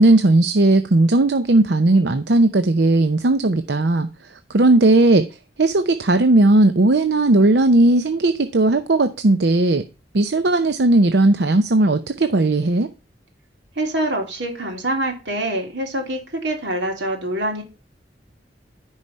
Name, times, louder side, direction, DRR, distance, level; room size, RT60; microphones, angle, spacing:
voice 1, 0.0-4.1 4.5-5.2 5.6-9.8 10.1-12.9, right 2 dB, 70° right, 9 dB, 0.7 m, -16 dB
voice 2, 13.7-17.6, right 1 dB, 85° right, 2 dB, 3.4 m, -25 dB
14.0 x 4.9 x 5.5 m, 0.30 s
head